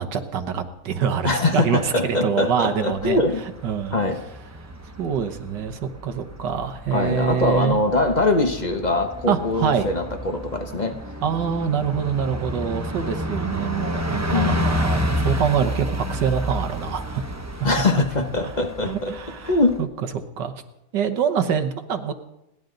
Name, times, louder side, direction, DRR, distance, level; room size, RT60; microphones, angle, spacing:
voice 1, 0.0-3.2 3.6-4.0 5.0-7.8 9.3-9.9 11.2-17.2 17.9-18.0 18.8-19.9 20.4-20.5 20.9-22.1, right 7 dB, 85° right, 8 dB, 1.8 m, -25 dB
voice 2, 1.2-3.4 3.9-4.2 6.9-11.0 14.3-14.7 17.6-19.1 19.4-19.8, left 2 dB, 30° left, 6 dB, 1.0 m, -22 dB
Bus, 2.7-19.8, equal, 20° right, 0.5 m, -30 dB
29.5 x 11.0 x 3.9 m, 0.88 s
omnidirectional pair, 1.8 m